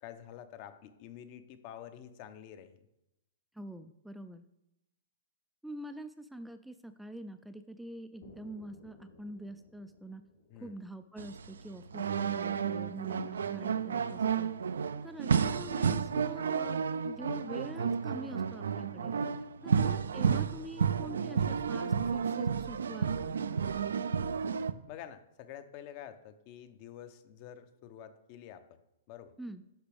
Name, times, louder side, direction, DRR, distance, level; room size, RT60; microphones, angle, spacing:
voice 1, 0.0-2.8 10.5-10.8 19.6-19.9 24.9-28.8 29.1-29.3, left 10 dB, 45° left, 11 dB, 0.7 m, -48 dB
voice 2, 3.5-4.4 5.6-10.2 10.6-14.5 15.0-19.1 19.6-23.4 29.4-29.6, right 1 dB, ahead, 9 dB, 0.3 m, -45 dB
sound 1, 8.2-12.1, left 3 dB, 80° left, 2.6 m, -59 dB
sound 2, 11.2-24.7, right 6 dB, 85° right, 0.4 m, -31 dB
10.0 x 5.9 x 3.5 m, 0.88 s
hypercardioid pair, 135°, 0 cm